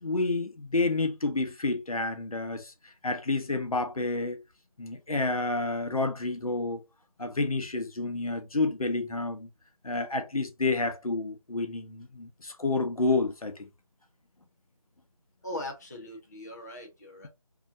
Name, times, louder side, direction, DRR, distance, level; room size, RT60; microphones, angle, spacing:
voice 1, 0.0-2.7 3.0-4.4 4.8-6.8 7.2-9.5 9.8-13.5, left 3 dB, 70° left, 1.1 m, -29 dB
voice 2, 15.4-17.3, left 1 dB, 30° left, 0.8 m, -40 dB
4.0 x 2.9 x 2.7 m
figure-of-eight pair, 170°, 19 cm